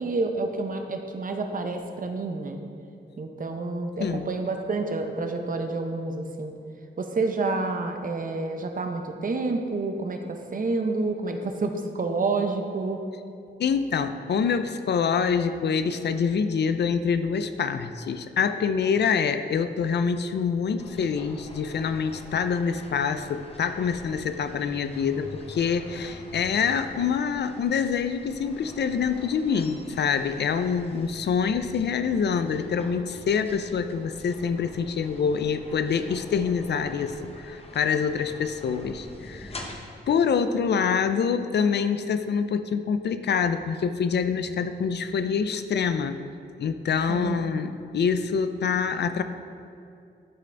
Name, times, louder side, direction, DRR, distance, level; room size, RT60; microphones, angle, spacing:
voice 1, 0.0-2.6 3.2-6.5 7.0-13.0 47.1-47.4, right 3 dB, 45° right, 5 dB, 0.7 m, -29 dB
voice 2, 13.6-39.6 40.1-46.2 46.6-49.2, left 6 dB, 60° left, 10 dB, 0.4 m, -26 dB
sound 1, 20.8-39.8, left 1 dB, 30° left, 0.8 m, -45 dB
11.5 x 3.8 x 3.3 m, 2.5 s
cardioid pair, 85°, 20 cm